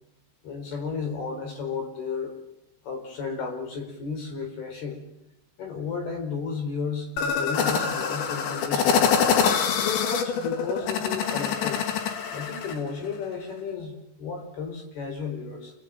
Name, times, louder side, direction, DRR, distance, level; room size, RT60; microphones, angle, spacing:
voice 1, 0.4-2.3 2.8-5.0 5.6-9.1 9.8-11.8 12.3-15.7, left 5 dB, 60° left, 3 dB, 6.6 m, -33 dB
sound 1, 7.2-12.8, left 6 dB, 90° left, 4.2 m, -25 dB
27.5 x 19.5 x 9.1 m, 0.87 s
omnidirectional pair, 5.1 m